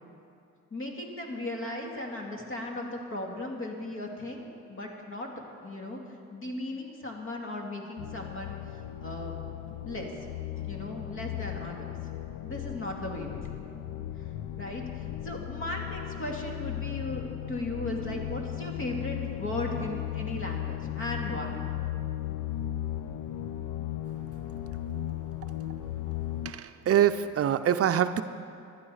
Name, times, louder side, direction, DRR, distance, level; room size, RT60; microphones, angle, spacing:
voice 1, 0.7-5.3 5.6-6.0 6.3-9.3 9.8-10.1 10.7-12.0 12.4-13.6 14.6-21.6, left 1 dB, 45° left, 1 dB, 2.3 m, -37 dB
sound 1, 8.0-26.5, left 12 dB, 85° left, 0.6 m, -36 dB
voice 2, 26.4-28.2, right 10 dB, 50° right, 10 dB, 0.5 m, -24 dB
16.0 x 11.5 x 4.9 m, 2.5 s
cardioid pair, 90°, 30 cm